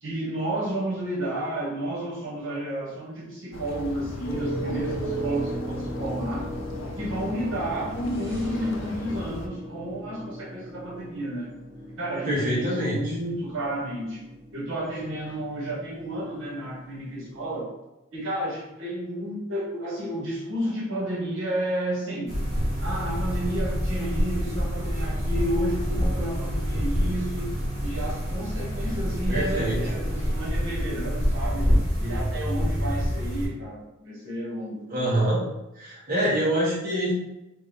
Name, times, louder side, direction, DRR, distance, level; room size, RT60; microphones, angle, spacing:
voice 1, 0.0-6.5 7.0-11.5 12.0-14.2 14.5-17.7 18.1-22.4 22.8-31.7 32.0-35.1, right 1 dB, 85° right, -5 dB, 1.3 m, -31 dB
sound 1, 3.5-9.5, left 1 dB, 85° left, 0.5 m, -37 dB
sound 2, 4.2-17.6, right 1 dB, 65° right, 1.4 m, -37 dB
voice 2, 12.3-13.0 29.3-29.8 34.9-35.4 35.7-37.1, right 1 dB, 45° right, -7 dB, 1.0 m, -25 dB
sound 3, 22.3-33.5, equal, 15° right, 1.5 m, -27 dB
3.5 x 2.5 x 3.3 m, 0.95 s
head